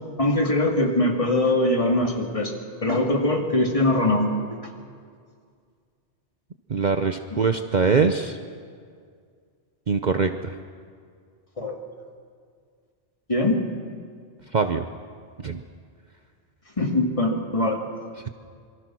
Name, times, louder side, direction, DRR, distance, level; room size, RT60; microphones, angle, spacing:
voice 1, 0.2-2.5 2.8-4.6 11.6-11.8 13.3-13.6 16.8-17.8, left 1 dB, 30° left, 2 dB, 2.5 m, -22 dB
voice 2, 6.7-8.4 9.9-10.5 14.5-14.8 15.4-15.6, right 5 dB, 45° right, 7 dB, 0.9 m, -22 dB
26.5 x 23.0 x 6.2 m, 2.1 s
omnidirectional pair, 1.2 m